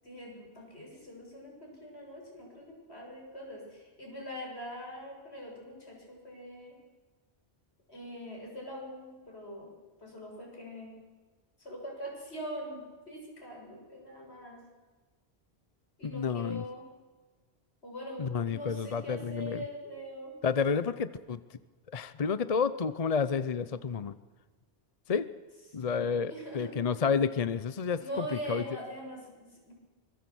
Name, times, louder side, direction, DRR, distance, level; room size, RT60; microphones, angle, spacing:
voice 1, 0.0-6.8 7.9-9.7 10.0-10.9 11.6-14.6 16.0-16.9 17.8-20.4 25.8-26.8 28.0-29.7, equal, 80° left, -1 dB, 7.3 m, -43 dB
voice 2, 16.0-16.6 18.2-19.6 20.4-21.4 21.9-24.2 25.1-25.3 25.7-28.6, left 6 dB, 40° left, 14 dB, 0.8 m, -30 dB
25.0 x 23.5 x 6.2 m, 1.4 s
omnidirectional pair, 1.1 m